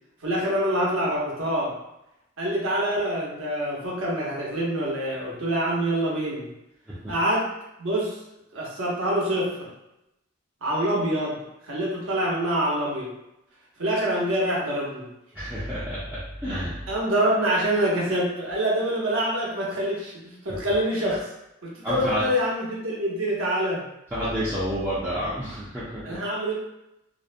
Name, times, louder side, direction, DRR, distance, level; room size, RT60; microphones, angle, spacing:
voice 1, 0.2-1.7 2.4-6.5 7.1-7.5 7.8-8.2 8.5-9.7 10.6-11.4 11.6-13.1 13.8-15.1 16.9-21.3 21.6-23.9 26.0-26.5, right 1 dB, 70° right, -4 dB, 0.7 m, -25 dB
voice 2, 15.3-16.9 21.8-22.3 24.1-26.2, equal, 10° right, -11 dB, 0.4 m, -29 dB
2.5 x 2.0 x 2.5 m, 0.87 s
head